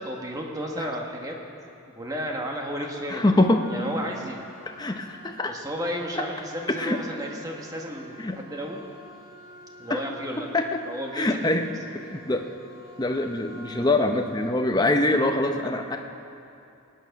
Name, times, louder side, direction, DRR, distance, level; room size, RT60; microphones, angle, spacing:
voice 1, 0.0-1.4 1.9-3.4 3.7-4.5 5.5-8.8 9.8-10.5 10.8-11.7, equal, 15° right, 0 dB, 1.3 m, -33 dB
voice 2, 3.1-3.6 4.8-5.5 6.2-6.3 6.7-7.0 8.2-8.4 9.9-10.0 10.5-10.8 11.1-11.6 12.1-12.4 13.0-16.0, left 2 dB, 20° left, 4 dB, 0.6 m, -24 dB
sound 1, 3.6-14.5, equal, 65° right, 4.3 m, -49 dB
19.0 x 9.2 x 5.9 m, 2.6 s
head